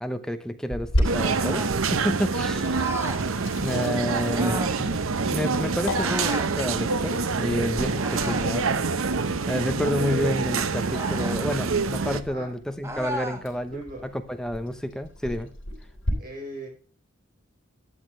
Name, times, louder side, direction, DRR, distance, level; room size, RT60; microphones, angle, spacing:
voice 1, 0.0-2.7 3.6-5.0 5.3-9.2 9.5-13.8 14.4-15.5, equal, 5° left, 8 dB, 0.8 m, -30 dB
Sink (filling or washing), 0.7-16.1, left 1 dB, 75° left, 4.0 m, -36 dB
sound 1, 1.0-12.2, right 4 dB, 85° right, 0.8 m, -26 dB
sound 2, 1.2-1.8 2.7-3.3 4.3-4.8 6.0-6.5 7.9-8.6 10.9-11.4 12.8-13.4, right 1 dB, 15° right, 1.2 m, -34 dB
voice 2, 2.4-3.0 12.3-12.5 13.7-14.1 16.2-16.7, right 1 dB, 45° right, 2 dB, 4.7 m, -39 dB
12.5 x 8.5 x 3.2 m, 0.36 s
head